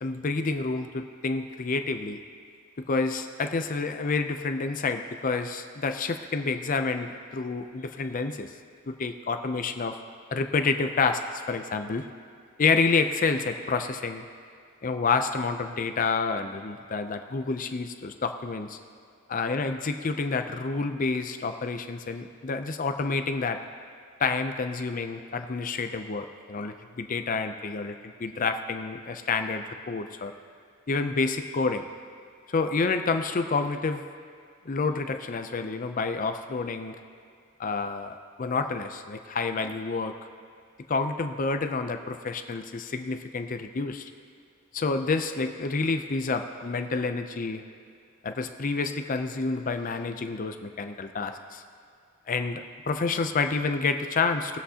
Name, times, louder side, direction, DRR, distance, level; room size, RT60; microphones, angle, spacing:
voice 1, 0.0-2.2 2.8-8.5 8.9-10.0 10.3-12.1 12.6-14.3 14.8-18.8 19.3-23.6 24.2-30.3 30.9-31.9 32.5-34.0 34.7-37.0 37.6-40.1 40.9-44.1 44.7-47.6 48.2-51.6 52.3-54.6, left 4 dB, 40° left, 7 dB, 0.5 m, -29 dB
19.5 x 7.9 x 2.8 m, 2.3 s
head